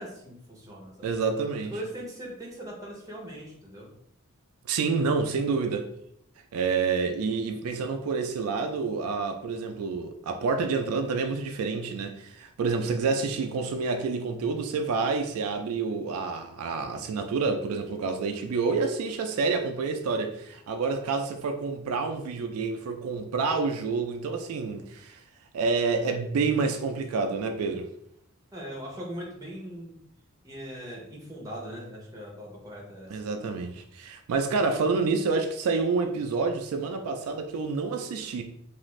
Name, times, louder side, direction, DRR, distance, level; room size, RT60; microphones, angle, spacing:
voice 1, 0.0-1.1 1.7-3.9 28.5-30.0 30.4-33.2, equal, 15° right, 0.7 m, -40 dB
voice 2, 1.0-1.7 4.7-5.9 6.5-25.2 25.5-27.9 33.1-38.4, right 4 dB, 85° right, 0.3 m, -28 dB
2.5 x 2.4 x 3.1 m
head